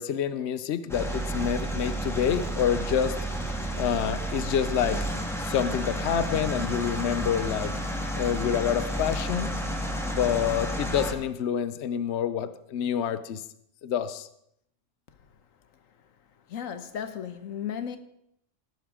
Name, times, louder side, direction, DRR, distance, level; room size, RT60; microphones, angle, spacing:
voice 1, 0.0-3.2 3.8-5.1 5.4-7.8 8.2-9.5 10.1-13.4 13.8-14.3, left 9 dB, 65° left, 0.9 m, -27 dB
sound 1, 0.9-11.1, right 1 dB, ahead, 1.5 m, -31 dB
voice 2, 16.5-18.0, left 8 dB, 90° left, 1.3 m, -34 dB
16.0 x 12.0 x 3.7 m
omnidirectional pair, 1.3 m